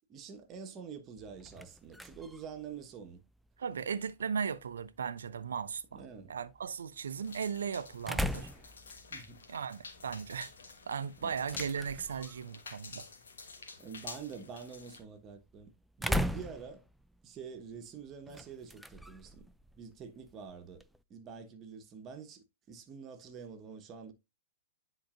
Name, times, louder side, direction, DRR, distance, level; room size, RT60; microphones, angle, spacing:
voice 1, 0.1-3.2 5.9-6.3 9.1-9.4 11.2-11.6 13.8-15.7 16.0-16.8 17.2-19.5 19.8-20.8 21.1-24.1, right 6 dB, 30° right, 1.3 m, -47 dB
sound 1, 1.2-21.0, equal, ahead, 0.4 m, -43 dB
voice 2, 3.6-6.0 6.3-8.5 9.5-10.5 10.9-13.1, right 6 dB, 75° right, 0.6 m, -37 dB
sound 2, 7.2-15.0, left 4 dB, 80° left, 1.3 m, -49 dB
10.0 x 4.1 x 2.6 m
hypercardioid pair, 115°, 0 cm